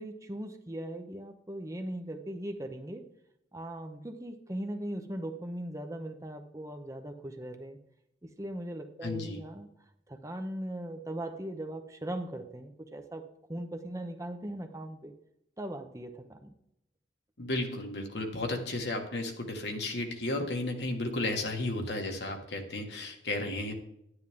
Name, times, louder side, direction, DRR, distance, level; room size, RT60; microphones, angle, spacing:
voice 1, 0.0-3.0 3.5-7.8 8.2-9.7 10.1-13.2 13.5-15.1 15.6-16.5, right 1 dB, 15° right, 6 dB, 0.7 m, -39 dB
voice 2, 9.0-9.4 17.4-23.7, left 2 dB, 65° left, 3 dB, 1.6 m, -33 dB
10.5 x 9.7 x 3.6 m, 0.78 s
head